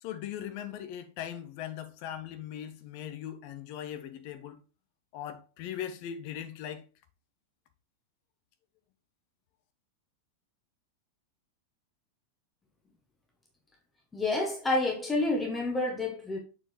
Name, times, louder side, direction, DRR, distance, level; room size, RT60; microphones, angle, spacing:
voice 1, 0.0-4.6 5.1-6.8, left 10 dB, 45° left, 0.9 m, -39 dB
voice 2, 14.1-16.4, left 2 dB, 15° left, 1.4 m, -29 dB
7.3 x 4.5 x 3.3 m
figure-of-eight pair, 90°, 0 cm